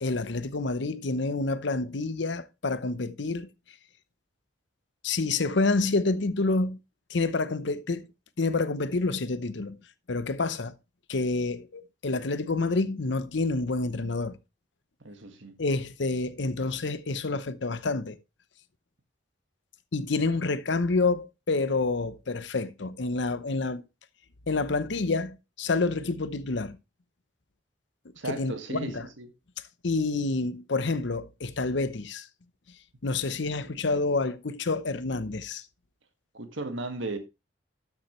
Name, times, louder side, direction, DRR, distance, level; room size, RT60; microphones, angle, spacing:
voice 1, 0.0-3.5 5.0-6.8 7.1-8.1 8.4-9.8 10.1-10.7 11.1-14.4 15.6-18.2 19.9-23.8 24.5-26.8 28.3-29.0 29.8-32.3 33.0-35.6, left 3 dB, 70° left, 0.8 m, -28 dB
voice 2, 15.0-15.6 28.2-29.3 33.7-34.0 36.3-37.2, right 2 dB, 85° right, 1.8 m, -36 dB
12.5 x 7.3 x 3.1 m
head